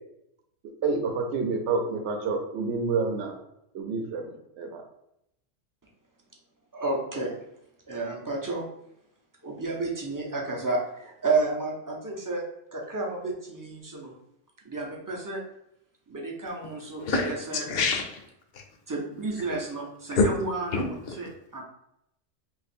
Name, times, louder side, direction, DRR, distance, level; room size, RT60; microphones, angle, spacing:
voice 1, 0.8-3.4 3.7-4.8, right 4 dB, 70° right, 3 dB, 0.9 m, -28 dB
voice 2, 6.7-7.4 7.9-8.7 9.4-12.5 12.7-14.1 14.6-15.4 16.1-17.6 18.9-21.6, right 3 dB, 30° right, -1 dB, 0.4 m, -31 dB
voice 3, 17.0-18.2 18.5-18.6 20.2-20.3 20.7-21.2, left 3 dB, 60° left, 4 dB, 0.7 m, -26 dB
2.9 x 2.4 x 4.1 m, 0.79 s
omnidirectional pair, 1.3 m